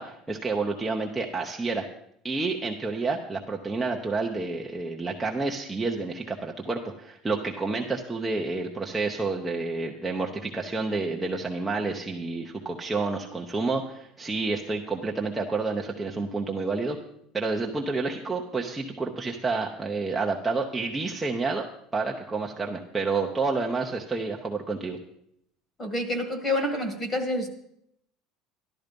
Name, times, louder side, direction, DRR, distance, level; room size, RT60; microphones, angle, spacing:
voice 1, 0.0-1.9 2.2-17.0 17.3-21.7 21.9-25.0, right 3 dB, 10° right, -1 dB, 0.8 m, -29 dB
voice 2, 25.8-27.5, left 1 dB, 20° left, 8 dB, 1.7 m, -28 dB
13.0 x 12.0 x 5.2 m, 0.73 s
cardioid pair, 175°, 0 cm